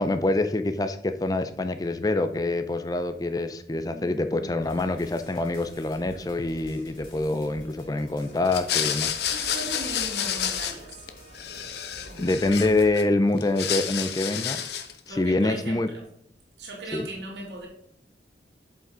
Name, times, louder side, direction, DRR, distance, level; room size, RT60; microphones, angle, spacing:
voice 1, 0.0-9.2 12.2-14.7 15.1-15.9 16.9-17.1, left 2 dB, 20° left, 0.4 m, -25 dB
voice 2, 3.8-4.5 9.3-11.1 12.0-12.4 15.1-16.1 16.6-17.7, right 1 dB, 80° right, 2.0 m, -38 dB
sound 1, 4.6-12.9, equal, 50° left, 2.7 m, -48 dB
sound 2, 8.5-11.1 11.3-13.0 13.4-15.0, left 9 dB, 70° left, 0.7 m, -29 dB
8.1 x 5.2 x 3.9 m
head